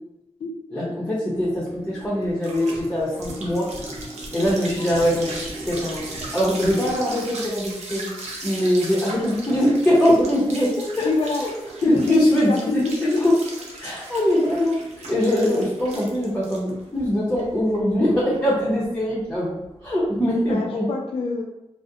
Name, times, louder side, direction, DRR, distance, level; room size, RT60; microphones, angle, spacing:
voice 1, 0.7-3.7 4.3-6.0 6.3-8.1 8.4-11.1 11.4-11.5 11.8-13.1 13.8-20.9, equal, 10° left, -8 dB, 0.6 m, -22 dB
sound 1, 0.9-7.1, right 1 dB, 15° right, 1.2 m, -39 dB
sound 2, 1.4-20.5, right 2 dB, 85° right, 0.5 m, -38 dB
voice 2, 11.0-11.4 11.8-13.3 20.4-21.4, left 3 dB, 55° left, 1 dB, 0.4 m, -25 dB
2.4 x 2.0 x 2.6 m, 0.91 s
wide cardioid pair, 125°, 11 cm